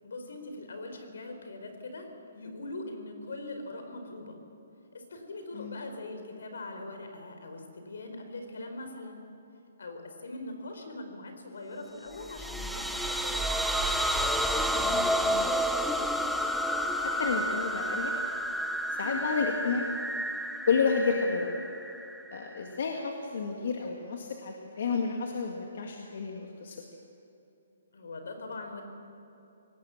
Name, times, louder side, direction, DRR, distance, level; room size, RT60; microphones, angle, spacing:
voice 1, 0.0-2.1 2.3-4.4 4.9-9.2 9.8-13.9 19.0-19.2 27.9-28.8, left 2 dB, 75° left, 5 dB, 4.7 m, -42 dB
sound 1, 12.2-22.8, equal, ahead, 0.6 m, -30 dB
voice 2, 14.8-15.5 17.0-18.2 18.9-19.9 20.7-21.5 22.3-26.8, left 5 dB, 50° left, 1 dB, 2.1 m, -31 dB
24.5 x 18.5 x 7.3 m, 2.9 s
hypercardioid pair, 175°, 0 cm